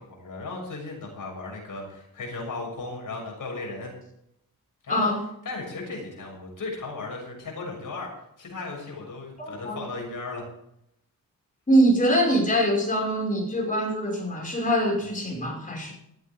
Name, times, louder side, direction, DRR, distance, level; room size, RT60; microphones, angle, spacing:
voice 1, 0.1-3.9 4.8-5.1 5.4-8.1 8.4-10.4, left 3 dB, 60° left, -1 dB, 6.6 m, -36 dB
voice 2, 9.4-9.8 11.7-15.9, right 1 dB, 20° left, -2 dB, 5.8 m, -23 dB
17.5 x 13.5 x 3.7 m, 0.76 s
wide cardioid pair, 145°, 36 cm